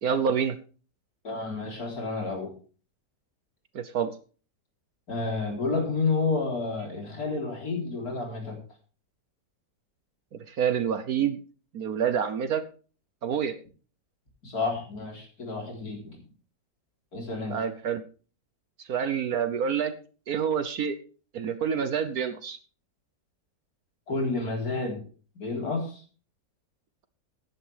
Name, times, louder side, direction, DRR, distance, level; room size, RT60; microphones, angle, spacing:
voice 1, 0.0-0.6 3.7-4.2 10.3-11.4 11.7-12.6 13.2-13.5 17.5-18.0 18.8-19.9 20.3-21.0 21.3-22.6, right 7 dB, 60° right, 11 dB, 1.3 m, -27 dB
voice 2, 1.2-2.5 5.1-8.6 14.4-16.3 17.1-17.6 24.1-25.0 25.4-26.0, left 3 dB, 55° left, 1 dB, 4.3 m, -30 dB
15.5 x 10.5 x 3.4 m, 0.38 s
omnidirectional pair, 1.9 m